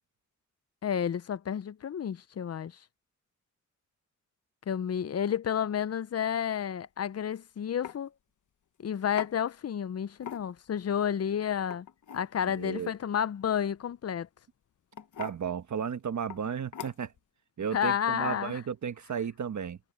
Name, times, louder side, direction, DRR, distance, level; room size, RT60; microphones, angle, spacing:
voice 1, 0.8-2.8 4.7-8.1 8.8-11.9 12.1-14.3 17.7-18.6, left 8 dB, 55° left, 0.5 m, -31 dB
sound 1, 7.1-7.3 7.8-8.0 9.2-9.3 10.2-10.7 11.6-12.3 13.9-14.2 14.9-15.4 16.3-16.4 16.7-17.2, left 9 dB, 85° left, 1.1 m, -41 dB
voice 2, 12.6-12.9 15.2-17.1 17.6-19.8, right 7 dB, 70° right, 1.3 m, -34 dB
cardioid pair, 70°, 30 cm